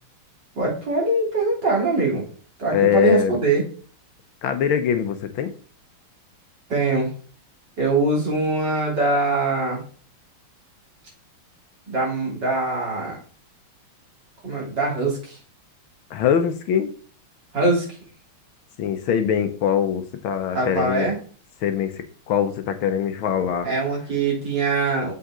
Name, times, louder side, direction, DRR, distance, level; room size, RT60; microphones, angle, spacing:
voice 1, 0.6-2.2 2.6-3.6 6.7-7.1 7.8-9.8 11.9-13.2 14.4-15.4 17.5-17.9 20.5-21.1 23.6-25.1, right 3 dB, 50° right, -3 dB, 3.9 m, -22 dB
voice 2, 2.7-3.4 4.4-5.5 16.1-16.9 18.8-21.1 21.6-23.7, left 8 dB, 75° left, 8 dB, 1.6 m, -22 dB
7.6 x 5.7 x 3.7 m, 0.41 s
omnidirectional pair, 2.3 m